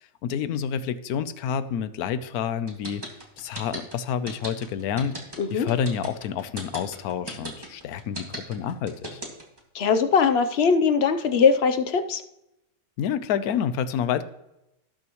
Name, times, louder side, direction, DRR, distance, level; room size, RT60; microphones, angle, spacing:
voice 1, 0.0-3.0 3.4-5.2 5.5-9.2 13.0-14.2, left 8 dB, 80° left, 13 dB, 1.2 m, -28 dB
sound 1, 2.7-9.6, right 1 dB, 15° right, 1.9 m, -36 dB
voice 2, 9.7-12.2, left 5 dB, 50° left, 10 dB, 0.9 m, -21 dB
18.5 x 6.4 x 3.0 m, 0.86 s
omnidirectional pair, 1.6 m